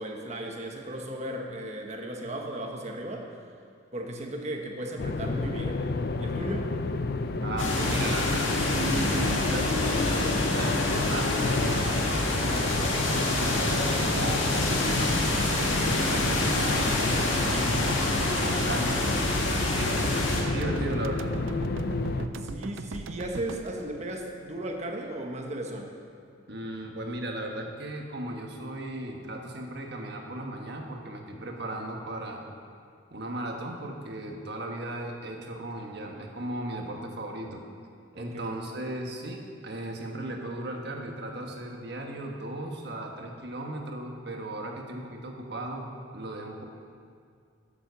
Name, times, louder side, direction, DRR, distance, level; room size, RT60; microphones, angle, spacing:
voice 1, 0.0-3.3 3.9-5.9 6.2-6.7 22.4-25.9 38.1-38.5, right 1 dB, 35° right, 2 dB, 1.2 m, -36 dB
sound 1, 5.0-22.3, left 3 dB, 55° left, 0.5 m, -30 dB
voice 2, 7.4-15.3 15.7-20.1 20.4-21.4 26.5-32.4 33.1-37.6 38.2-45.8 46.1-46.6, right 1 dB, 60° right, 1 dB, 1.4 m, -36 dB
sound 2, 7.6-20.4, left 2 dB, 90° left, 1.9 m, -28 dB
sound 3, 12.6-24.8 25.2-25.3, right 4 dB, 90° right, 0.5 m, -40 dB
11.0 x 7.6 x 6.9 m, 2.2 s
head